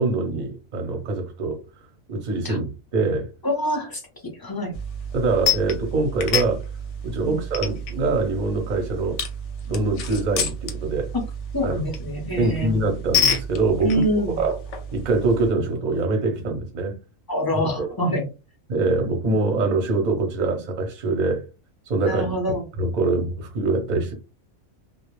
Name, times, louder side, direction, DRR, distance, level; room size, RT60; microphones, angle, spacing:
voice 1, 0.0-1.6 2.1-3.3 5.1-6.6 7.0-9.2 9.6-11.1 11.6-11.8 12.4-13.9 14.4-14.5 14.9-17.0 17.8-17.9 18.7-21.4 21.9-22.3 22.8-24.1, right 3 dB, 45° right, 0.6 m, -24 dB
voice 2, 3.4-4.0 4.4-4.7 7.2-7.4 11.5-12.7 13.8-14.4 17.3-18.3 22.0-22.6, equal, 30° left, 0.4 m, -25 dB
sound 1, 4.7-15.5, left 3 dB, 65° left, 0.8 m, -29 dB
2.3 x 2.0 x 3.0 m
omnidirectional pair, 1.5 m